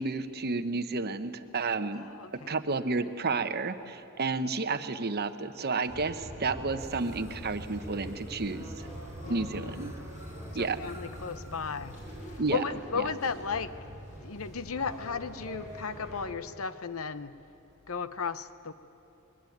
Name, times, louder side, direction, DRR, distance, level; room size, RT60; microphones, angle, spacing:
voice 1, 0.0-2.1 2.5-8.9 9.3-9.9 10.5-10.8 12.4-12.6, right 3 dB, 45° right, 10 dB, 1.0 m, -31 dB
voice 2, 2.0-2.6 9.2-9.9 10.6-12.0 12.5-13.9 14.2-17.4 17.9-18.7, left 5 dB, 70° left, 13 dB, 0.9 m, -35 dB
sound 1, 5.8-16.3, equal, 35° left, 7.2 m, -43 dB
sound 2, 6.8-12.4, right 1 dB, 15° right, 2.8 m, -55 dB
21.5 x 20.0 x 9.3 m, 3.0 s
head